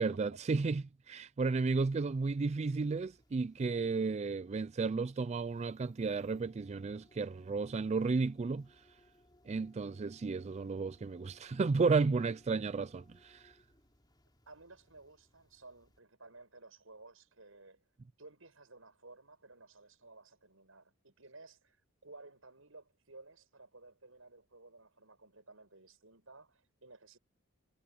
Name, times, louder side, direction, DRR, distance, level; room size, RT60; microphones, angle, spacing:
voice 1, 0.0-8.8 9.5-13.6, right 4 dB, 30° right, 0.4 m, -33 dB
sound 1, 1.6-16.0, left 1 dB, 20° left, 3.6 m, -67 dB
voice 2, 14.5-17.8 18.2-27.2, right 3 dB, 75° right, 7.9 m, -56 dB
head